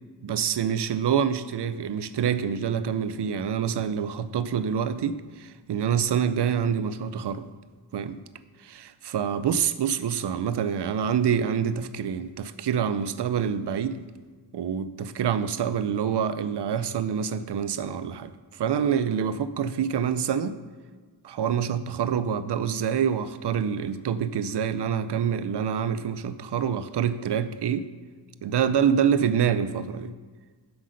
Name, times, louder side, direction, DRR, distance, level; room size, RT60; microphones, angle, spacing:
voice 1, 0.2-7.5 7.9-8.2 8.6-14.1 14.5-20.6 21.2-27.9 28.4-30.1, right 8 dB, 80° right, 13 dB, 0.6 m, -26 dB
7.7 x 5.9 x 6.4 m, 1.5 s
wide cardioid pair, 130°, 40 cm